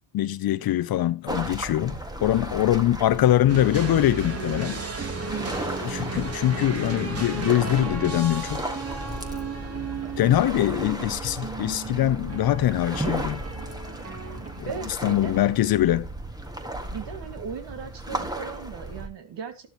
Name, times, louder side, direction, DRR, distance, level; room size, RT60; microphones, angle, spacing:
voice 1, 0.1-4.8 5.8-8.6 10.2-13.4 14.6-14.7 15.0-16.1, left 13 dB, 45° left, 0.8 m, -23 dB
sound 1, 1.3-19.1, right 1 dB, 10° right, 1.8 m, -35 dB
sound 2, 3.5-14.7, right 3 dB, 30° right, 2.5 m, -35 dB
sound 3, 3.8-8.3 8.6-8.7, right 9 dB, 70° right, 1.8 m, -48 dB
voice 2, 14.6-15.4 16.9-19.7, right 7 dB, 55° right, 2.3 m, -37 dB
12.5 x 12.0 x 3.1 m
supercardioid pair, 80°, 50 cm